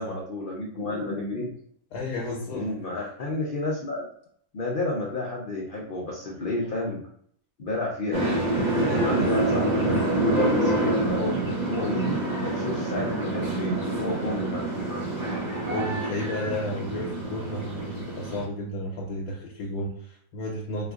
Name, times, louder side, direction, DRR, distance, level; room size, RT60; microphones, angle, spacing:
voice 1, 0.0-1.5 2.5-4.1 4.5-7.0 7.6-8.5 8.9-15.0, left 2 dB, 65° left, -4 dB, 0.5 m, -31 dB
voice 2, 1.9-2.7 8.9-9.3 15.7-20.9, left 1 dB, 85° left, -2 dB, 1.3 m, -32 dB
sound 1, 8.1-18.4, right 2 dB, 45° right, 0.6 m, -27 dB
4.2 x 2.4 x 2.3 m, 0.64 s
omnidirectional pair, 1.7 m